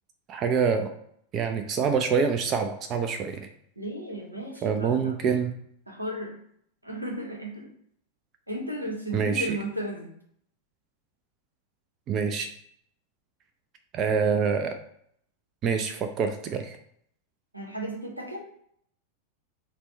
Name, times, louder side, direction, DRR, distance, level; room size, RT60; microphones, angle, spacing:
voice 1, 0.3-0.9 1.3-3.5 4.6-5.5 9.1-9.6 12.1-12.5 13.9-14.8 15.6-16.8, right 6 dB, 30° right, 7 dB, 0.4 m, -26 dB
voice 2, 3.8-5.1 5.9-6.4 6.8-7.7 8.5-10.1 17.5-18.4, right 1 dB, 85° right, 0 dB, 0.9 m, -34 dB
4.2 x 2.2 x 4.2 m, 0.68 s
figure-of-eight pair, 90°, 0 cm